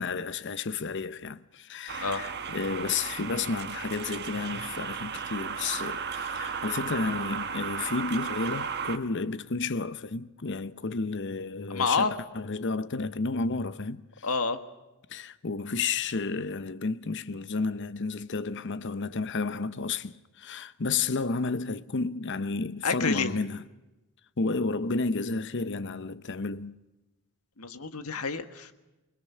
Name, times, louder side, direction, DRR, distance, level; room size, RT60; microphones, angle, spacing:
voice 1, 0.0-14.3 15.1-23.6 24.4-26.8, left 4 dB, 55° left, 0.8 m, -31 dB
sound 1, 1.9-9.0, right 6 dB, 50° right, 1.5 m, -35 dB
voice 2, 11.7-12.1 14.2-14.6 22.8-23.3 27.6-28.7, left 4 dB, 75° left, 1.5 m, -28 dB
28.5 x 20.5 x 5.7 m
head